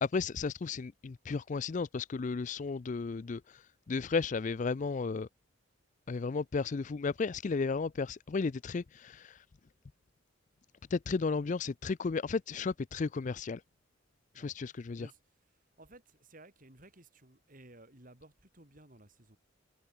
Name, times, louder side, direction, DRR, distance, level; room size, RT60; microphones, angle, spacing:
voice 1, 0.0-5.3 6.1-9.4 10.9-13.6 14.3-15.1, left 4 dB, 40° left, 0.4 m, -34 dB
voice 2, 15.8-19.4, right 1 dB, 45° right, 4.0 m, -56 dB
head